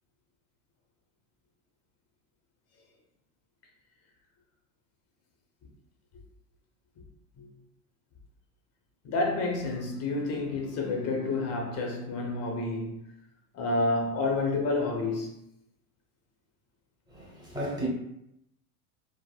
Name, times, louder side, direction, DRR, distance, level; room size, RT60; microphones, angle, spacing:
voice 1, 9.0-13.0 13.5-15.3, left 2 dB, 35° left, 0.8 m, -29 dB
voice 2, 17.1-17.9, right 2 dB, 10° right, 0.9 m, -34 dB
3.4 x 2.0 x 2.3 m
hypercardioid pair, 105°, 44 cm